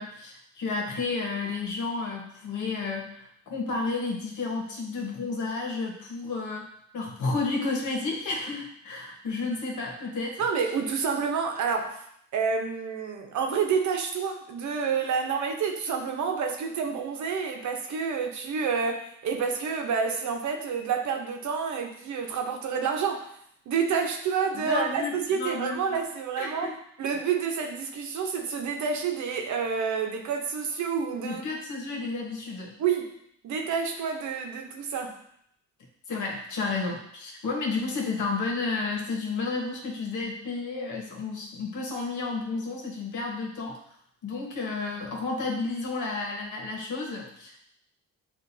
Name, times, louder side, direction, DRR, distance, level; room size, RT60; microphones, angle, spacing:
voice 1, 0.0-6.7 6.9-10.4 24.5-26.0 26.4-26.8 31.2-32.8 36.1-43.8 44.2-47.6, left 3 dB, 75° left, -1 dB, 1.3 m, -31 dB
voice 2, 10.4-12.0 12.3-23.3 23.7-26.7 27.0-31.4 32.8-33.1 33.4-35.2, right 6 dB, 70° right, 4 dB, 0.9 m, -29 dB
7.5 x 2.6 x 2.7 m, 0.70 s
cardioid pair, 90°, 30 cm